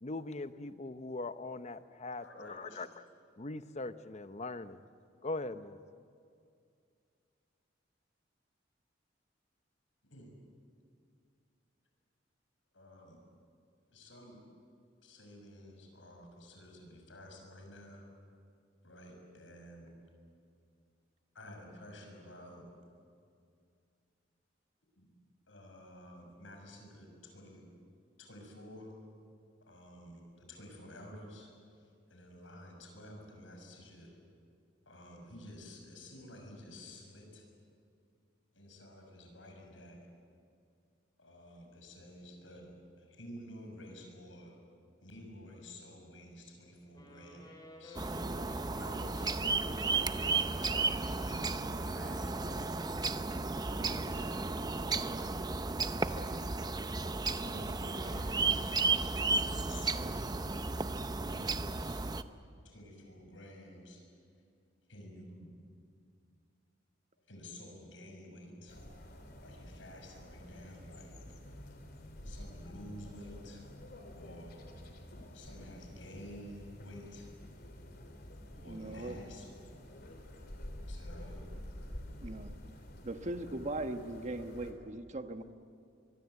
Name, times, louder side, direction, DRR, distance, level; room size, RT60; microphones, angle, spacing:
voice 1, 0.0-2.9 3.4-4.8 5.2-6.0, left 2 dB, 40° left, 11 dB, 0.8 m, -41 dB
voice 2, 2.1-2.9 10.0-10.3 12.7-13.2 13.9-14.4 15.0-18.0 18.8-19.9 21.3-22.7 25.0-25.1 25.5-27.7 28.2-29.0 29.7-31.5 31.8-34.1 34.9-37.5 38.5-40.0 41.2-42.7 43.0-44.5 45.0-47.5 47.8-48.1 48.7-52.7 53.6-55.5 56.0-56.5 57.3-58.8 59.4-60.5 61.1-62.1 62.6-64.0 64.9-65.5 67.3-68.8 69.4-71.2 72.2-73.7 74.1-74.6 75.3-77.3 78.5-79.6 80.9-81.4, left 1 dB, 90° left, 2 dB, 6.5 m, -51 dB
Wind instrument woodwind instrument, 46.9-54.4, left 1 dB, 20° left, 6.2 m, -54 dB
sound 1, 47.9-62.2, right 3 dB, 20° right, 0.7 m, -34 dB
sound 2, 68.7-84.7, left 1 dB, 55° left, 3.3 m, -49 dB
voice 3, 78.6-79.2 82.2-82.5 83.0-85.4, right 2 dB, 40° right, 7 dB, 1.3 m, -39 dB
24.0 x 23.0 x 8.2 m, 2.4 s
head